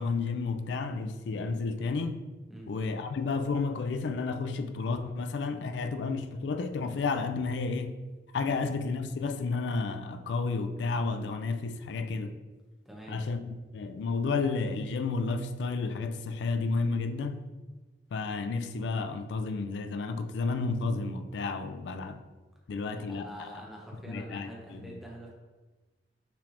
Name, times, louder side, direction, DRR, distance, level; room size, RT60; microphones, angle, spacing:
voice 1, 0.0-2.2 2.7-8.0 8.3-12.4 13.1-13.4 13.7-17.4 18.1-22.2 22.7-23.5 24.1-24.9, left 4 dB, 90° left, 0.3 m, -31 dB
voice 2, 12.8-13.2 22.9-25.3, right 1 dB, ahead, 0.7 m, -45 dB
5.6 x 3.3 x 2.5 m
head